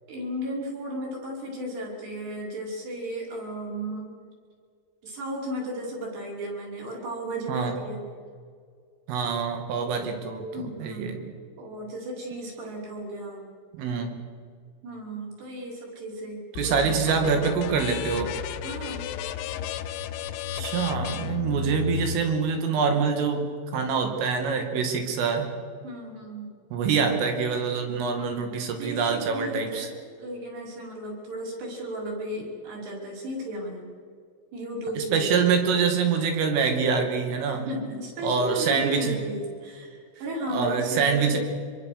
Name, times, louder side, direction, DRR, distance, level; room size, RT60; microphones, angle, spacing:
voice 1, 0.1-4.1 5.0-8.0 10.5-13.5 14.8-17.0 18.6-19.1 25.8-26.5 28.2-28.3 28.8-29.9 30.2-33.9 34.5-35.3 37.5-41.4, equal, 55° right, -3 dB, 7.4 m, -35 dB
voice 2, 7.5-7.8 9.1-11.2 13.8-14.2 16.5-18.4 20.5-25.5 26.7-29.9 35.0-37.7 38.2-39.2 40.5-41.4, right 5 dB, 90° right, 4 dB, 5.0 m, -25 dB
sound 1, 16.6-22.2, left 9 dB, 85° left, 3.3 m, -33 dB
25.0 x 23.5 x 6.8 m, 2.1 s
omnidirectional pair, 5.6 m